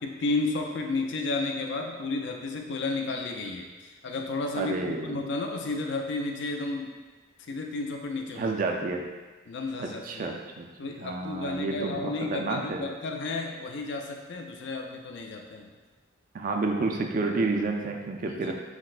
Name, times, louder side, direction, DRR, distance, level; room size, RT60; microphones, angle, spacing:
voice 1, 0.0-6.9 7.4-8.5 9.5-10.4 10.8-15.7 18.2-18.5, left 3 dB, 60° left, 2 dB, 0.4 m, -32 dB
voice 2, 4.5-5.2 8.4-9.0 9.8-10.6 11.0-12.8 16.3-18.5, right 3 dB, 40° right, 2 dB, 0.3 m, -30 dB
5.8 x 2.1 x 2.4 m, 1.3 s
head